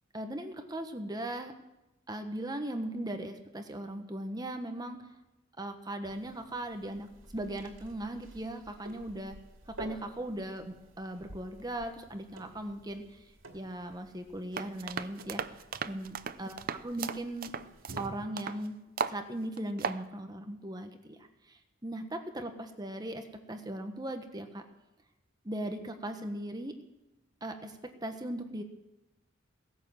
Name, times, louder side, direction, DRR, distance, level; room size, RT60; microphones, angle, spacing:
voice 1, 0.1-1.5 2.1-5.0 5.6-9.4 9.7-13.2 13.5-15.4 15.9-16.6 16.8-17.5 18.0-18.8 19.1-21.2 21.5-24.6 25.4-26.8 27.4-27.7 28.0-28.6, right 1 dB, 20° right, 6 dB, 1.2 m, -38 dB
sound 1, 6.0-18.3, right 1 dB, 85° right, 2.6 m, -52 dB
sound 2, 14.5-18.6 19.0-19.2 19.6-20.0, right 6 dB, 45° right, 0.6 m, -36 dB
17.5 x 11.0 x 7.4 m, 0.97 s
head